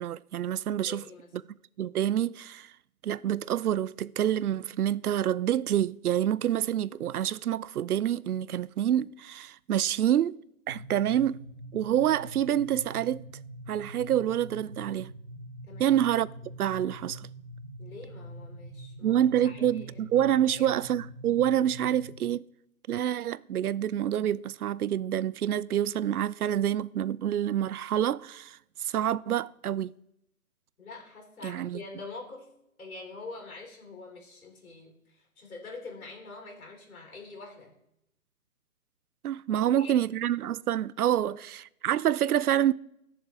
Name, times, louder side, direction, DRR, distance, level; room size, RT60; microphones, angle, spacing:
voice 1, 0.0-1.0 1.3-1.4 1.8-2.7 3.0-10.4 10.7-11.4 11.7-13.2 13.7-15.1 15.8-16.3 16.6-17.3 19.0-22.4 22.9-29.9 31.4-31.8 39.2-42.7, right 11 dB, 85° right, 0.5 m, -27 dB
voice 2, 0.9-1.3 15.7-16.0 17.8-20.1 20.5-20.8 30.8-32.5 32.8-37.7 39.5-40.1 41.2-41.4, left 3 dB, 70° left, 3.9 m, -45 dB
sound 1, 10.7-22.2, right 1 dB, 30° right, 0.6 m, -44 dB
20.0 x 7.0 x 3.5 m
hypercardioid pair, 175°, 43 cm